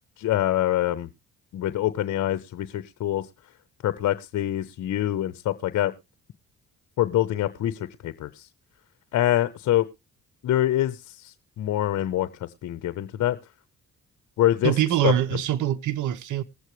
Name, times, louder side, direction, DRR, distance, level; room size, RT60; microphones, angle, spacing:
voice 1, 0.2-1.1 1.5-3.3 3.8-5.9 7.0-8.5 9.1-9.9 10.4-13.4 14.4-14.7 15.0-15.1, left 13 dB, 70° left, 0.8 m, -25 dB
voice 2, 14.6-16.4, right 12 dB, 75° right, 1.1 m, -24 dB
20.5 x 8.1 x 3.1 m
cardioid pair, 90°, 30 cm